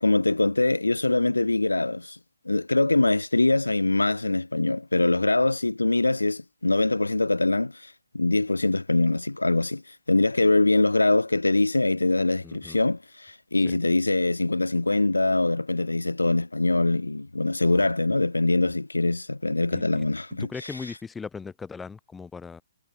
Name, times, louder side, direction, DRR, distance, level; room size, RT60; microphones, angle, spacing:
voice 1, 0.0-2.2 2.5-20.8, left 2 dB, 85° left, 0.4 m, -23 dB
voice 2, 12.4-12.8 13.7-13.8 17.7-17.9 19.7-20.1 20.4-22.6, left 5 dB, 10° left, 2.4 m, -39 dB
figure-of-eight pair, 135°, 0 cm